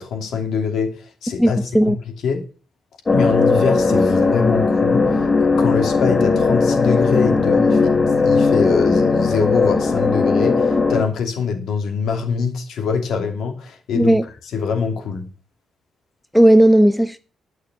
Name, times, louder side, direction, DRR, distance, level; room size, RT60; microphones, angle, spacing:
voice 1, 0.0-2.0 2.2-2.4 3.1-14.1 14.5-15.3, left 6 dB, 70° left, 2.8 m, -24 dB
voice 2, 1.4-2.0 13.9-14.2 16.3-17.2, right 1 dB, ahead, 0.6 m, -14 dB
sound 1, 3.1-11.0, left 4 dB, 25° left, 1.1 m, -17 dB
12.0 x 6.3 x 8.4 m
cardioid pair, 145°, 0 cm